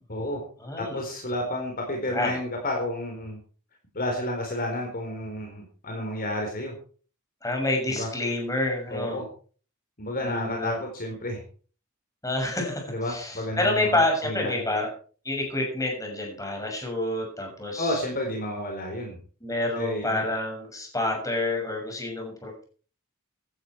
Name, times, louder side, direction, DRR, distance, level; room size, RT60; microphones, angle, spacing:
voice 1, 0.1-0.4 0.8-3.4 3.9-6.7 7.9-8.1 8.9-9.3 10.0-11.4 12.9-14.6 17.8-19.2 19.7-20.3, left 1 dB, 40° left, 2 dB, 4.1 m, -31 dB
voice 2, 0.6-1.0 2.1-2.3 7.4-9.2 10.2-10.8 12.2-14.9 15.2-18.0 19.4-22.6, left 2 dB, 15° left, 1 dB, 6.7 m, -28 dB
16.0 x 13.0 x 4.7 m, 0.41 s
head